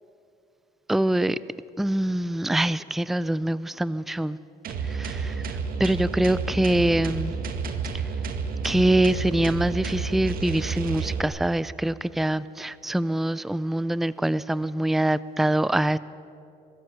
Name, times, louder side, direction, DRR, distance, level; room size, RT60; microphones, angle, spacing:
voice 1, 0.9-1.4 1.8-4.4 4.8-5.4 5.8-7.3 8.6-16.0, right 1 dB, ahead, 17 dB, 0.4 m, -24 dB
sound 1, 4.6-11.2, right 5 dB, 60° right, 2.0 m, -30 dB
23.5 x 13.5 x 9.1 m, 2.7 s
cardioid pair, 110°, 17 cm